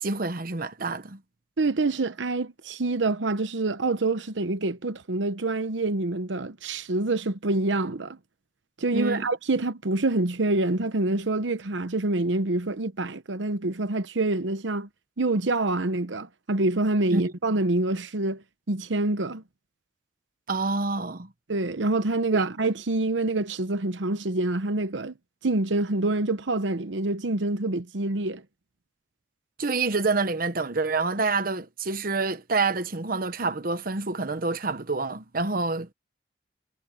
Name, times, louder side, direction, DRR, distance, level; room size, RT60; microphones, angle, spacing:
voice 1, 0.0-1.2 8.9-9.3 17.1-17.2 20.5-21.3 22.3-22.4 29.6-35.9, right 3 dB, 50° right, 1.1 m, -27 dB
voice 2, 1.6-8.2 8.8-14.9 15.2-19.4 21.5-25.1 25.4-28.4, right 2 dB, 85° right, 0.9 m, -26 dB
head